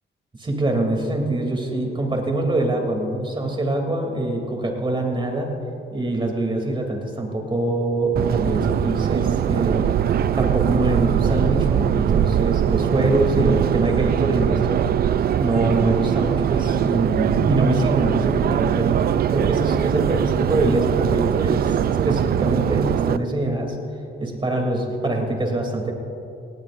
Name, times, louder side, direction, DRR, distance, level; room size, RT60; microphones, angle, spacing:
voice 1, 0.3-5.6 5.9-9.9 10.3-14.9 15.4-19.0 19.3-23.8 24.2-25.9, right 2 dB, 25° right, 2 dB, 2.9 m, -24 dB
Subway metro underground, 8.1-23.2, right 10 dB, 50° right, 0.4 m, -21 dB
18.5 x 18.0 x 2.6 m, 2.7 s
cardioid pair, 90°, 20 cm